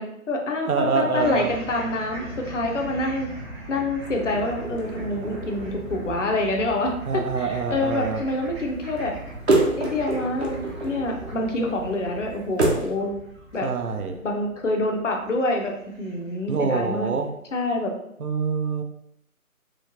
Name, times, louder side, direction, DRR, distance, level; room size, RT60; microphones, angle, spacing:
voice 1, 0.0-3.3 3.7-9.1 9.8-13.1 13.5-13.7 14.2-17.1 17.5-17.9, left 2 dB, 55° left, 2 dB, 0.7 m, -26 dB
voice 2, 0.7-1.5 7.1-8.2 13.6-14.2 16.5-17.3 18.2-18.8, right 5 dB, 75° right, 5 dB, 0.7 m, -25 dB
sound 1, 1.2-16.5, right 1 dB, 20° right, 0.8 m, -40 dB
sound 2, 4.2-13.0, right 2 dB, 45° right, 0.9 m, -29 dB
3.1 x 3.1 x 2.7 m, 0.78 s
figure-of-eight pair, 160°, 44 cm